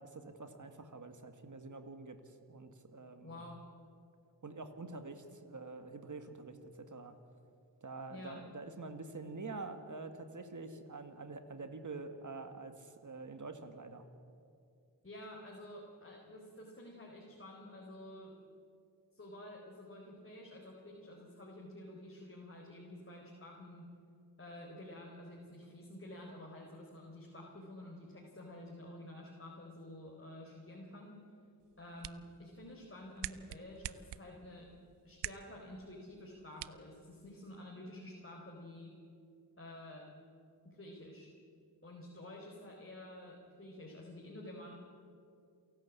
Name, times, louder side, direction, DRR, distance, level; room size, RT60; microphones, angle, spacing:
voice 1, 0.0-2.2 2.5-3.4 4.4-7.2 7.8-14.1, right 3 dB, 45° right, 8 dB, 2.0 m, -46 dB
voice 2, 3.2-3.6 8.1-8.4 15.0-18.3 19.1-23.9 24.4-31.2 31.8-34.7 35.0-38.9 39.6-40.1 40.6-41.3 41.8-44.7, left 1 dB, 30° left, -2 dB, 4.4 m, -50 dB
sound 1, 31.6-37.6, right 12 dB, 75° right, 0.6 m, -49 dB
28.0 x 12.0 x 8.5 m, 2.4 s
cardioid pair, 50°, 43 cm